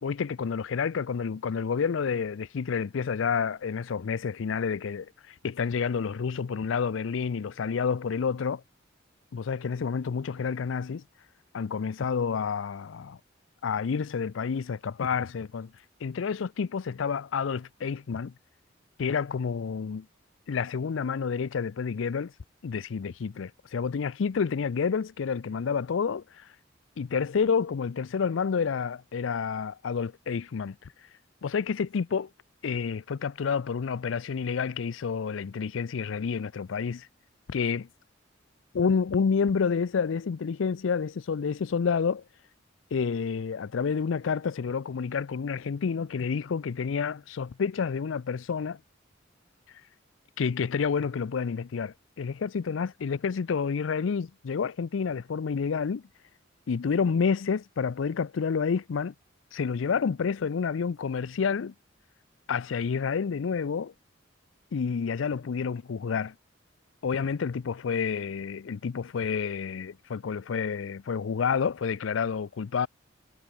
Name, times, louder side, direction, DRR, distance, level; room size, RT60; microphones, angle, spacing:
voice 1, 0.0-8.6 9.3-11.0 11.5-13.2 13.6-15.7 16.0-18.3 19.0-20.1 20.5-22.3 22.6-26.5 27.0-30.9 31.4-32.3 32.6-37.1 37.5-37.9 38.7-42.2 42.9-48.8 50.4-56.0 56.7-59.1 59.5-61.7 62.5-63.9 64.7-66.3 67.0-72.9, left 6 dB, 80° left, 0.5 m, -29 dB
head